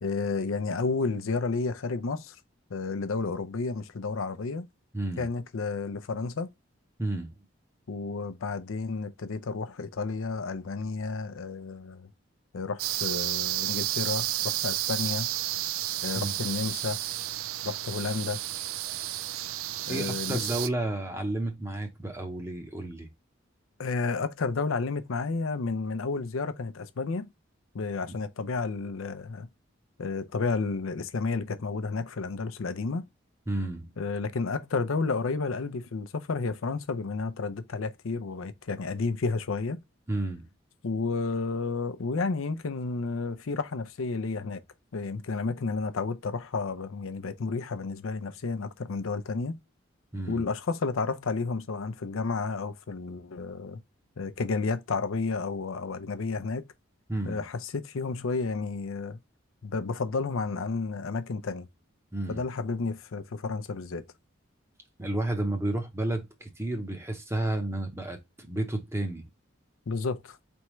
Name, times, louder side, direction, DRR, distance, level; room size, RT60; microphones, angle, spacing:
voice 1, 0.0-2.4 2.7-4.7 5.2-6.5 7.9-12.1 12.5-15.3 16.0-17.0 17.6-18.4 19.9-20.4 23.8-27.3 27.7-29.5 30.0-33.1 34.0-39.8 40.8-44.6 44.9-49.6 50.3-53.8 54.2-56.6 57.2-59.2 59.6-61.7 62.3-64.0 69.9-70.4, left 4 dB, 85° left, 0.6 m, -31 dB
voice 2, 4.9-5.3 7.0-7.4 16.2-16.3 19.9-23.1 33.5-33.9 40.1-40.5 50.1-50.4 57.1-57.4 62.1-62.4 65.0-69.2, right 1 dB, 15° right, 0.8 m, -31 dB
sound 1, 12.8-20.7, right 14 dB, 85° right, 0.3 m, -31 dB
4.5 x 3.5 x 3.1 m
head